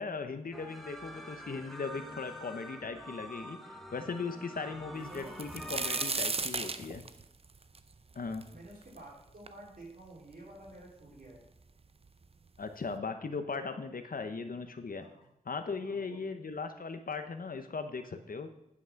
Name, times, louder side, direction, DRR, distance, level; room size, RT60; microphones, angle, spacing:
voice 1, 0.0-7.0 8.1-8.5 12.6-15.1 15.5-18.5, left 4 dB, 80° left, 8 dB, 0.8 m, -38 dB
sound 1, 0.5-6.1, equal, ahead, 1.1 m, -46 dB
sound 2, 5.1-9.0 9.5-9.6 10.3-10.4 10.7-11.3 12.2-12.3 12.7-12.9, right 4 dB, 45° right, 0.5 m, -35 dB
voice 2, 8.5-11.4 14.9-15.3 15.8-16.2, right 1 dB, 80° right, -4 dB, 3.6 m, -51 dB
9.8 x 6.1 x 5.7 m, 0.80 s
wide cardioid pair, 75°, 15 cm